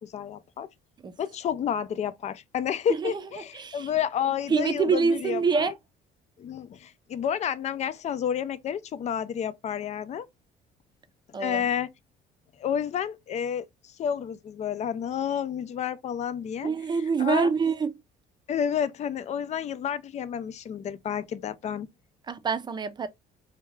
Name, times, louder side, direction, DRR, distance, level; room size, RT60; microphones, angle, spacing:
voice 1, 0.0-0.7 1.2-5.7 6.4-10.3 11.4-11.9 12.6-13.7 14.0-16.7 17.2-17.5 18.5-21.9, left 8 dB, 40° left, 0.4 m, -30 dB
voice 2, 3.5-3.9 4.5-5.7 11.3-11.7 16.6-17.9 22.3-23.1, right 5 dB, 25° right, 0.5 m, -25 dB
2.8 x 2.3 x 3.0 m
cardioid pair, 110°, 17 cm